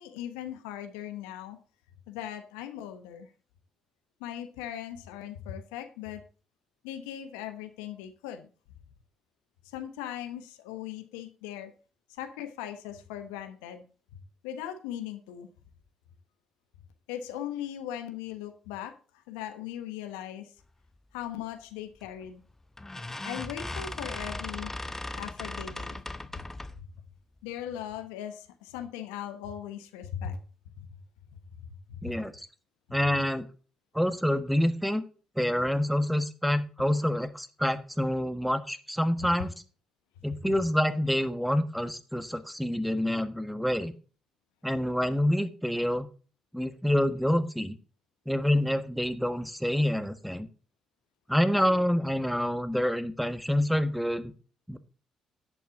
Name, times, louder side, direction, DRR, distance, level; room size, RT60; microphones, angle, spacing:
voice 1, 0.0-1.6 2.1-3.3 4.2-6.2 6.8-8.5 9.7-11.7 12.2-13.8 14.4-15.5 17.1-20.5 21.1-22.4 23.2-24.7 25.2-26.0 26.3-26.4 27.4-30.4 30.8-30.9 31.3-32.2 40.4-40.5, left 10 dB, 85° left, 8 dB, 1.1 m, -39 dB
sound 1, 22.0-22.3 22.8-26.9, left 2 dB, 15° left, 1.0 m, -38 dB
voice 2, 32.0-32.3 32.9-33.4 33.9-35.0 35.4-39.5 40.2-43.9 44.6-46.1 46.5-47.8 48.3-50.5 51.3-54.3 54.7-54.8, equal, ahead, 10 dB, 1.5 m, -27 dB
10.5 x 8.5 x 3.7 m, 0.36 s
hypercardioid pair, 45°, 2 cm